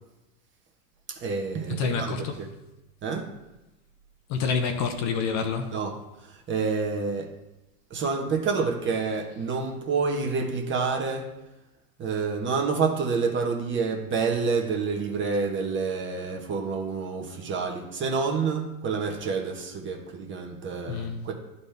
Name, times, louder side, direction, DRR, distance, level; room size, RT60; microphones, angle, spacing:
voice 1, 1.1-2.5 3.0-3.3 5.7-5.9 6.2-7.3 7.9-11.3 12.0-21.3, right 4 dB, 25° right, 2 dB, 1.2 m, -28 dB
voice 2, 1.8-2.3 4.3-5.7 20.9-21.2, left 5 dB, 35° left, 6 dB, 0.8 m, -27 dB
11.5 x 4.2 x 3.4 m, 0.99 s
hypercardioid pair, 110°, 46 cm